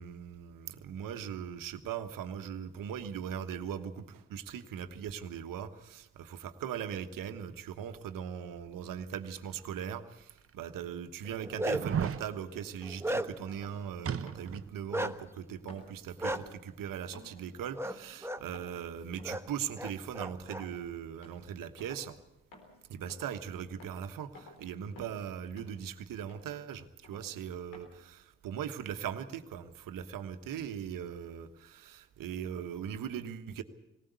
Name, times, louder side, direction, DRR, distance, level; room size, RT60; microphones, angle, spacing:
voice 1, 0.0-22.2 22.9-33.6, right 8 dB, 75° right, 9 dB, 1.4 m, -40 dB
sound 1, 9.7-9.8 10.5-10.6 11.7-12.2 14.0-14.7 15.0-15.1, right 8 dB, 40° right, 0.9 m, -34 dB
Bark, 11.3-12.0 12.5-13.6 14.9-15.1 16.2-16.4 17.8-18.0 18.2-18.4 19.2-19.4 19.8-20.6, right 1 dB, 5° right, 1.3 m, -34 dB
sound 2, 12.0-12.3 12.8-13.1 13.5-13.8 14.3-15.4 15.7-16.0 16.3-16.7 17.1-17.4 17.8-18.1 18.5-18.8 19.2-19.5 19.8-20.2 20.5-20.8 21.2-21.4 21.8-22.1 22.5-22.8 23.1-23.4 23.8-24.0 24.3-24.6 25.0-25.3 25.6-25.8 26.3-26.5 27.0-27.3 27.7-27.8, left 2 dB, 80° left, 4.1 m, -53 dB
19.0 x 18.0 x 8.2 m, 0.89 s
hypercardioid pair, 45°, 33 cm